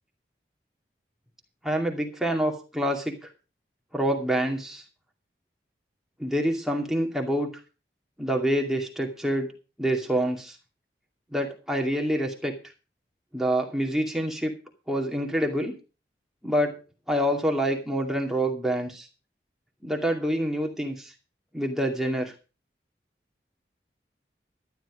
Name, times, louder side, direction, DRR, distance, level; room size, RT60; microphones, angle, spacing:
voice 1, 1.6-3.1 3.9-4.8 6.2-7.5 8.2-9.5 9.8-10.6 11.3-12.5 13.3-14.5 14.9-15.7 16.4-16.7 17.1-19.1 19.8-21.1 21.5-22.3, equal, ahead, 1 dB, 2.4 m, -26 dB
12.5 x 10.5 x 5.0 m, 0.33 s
head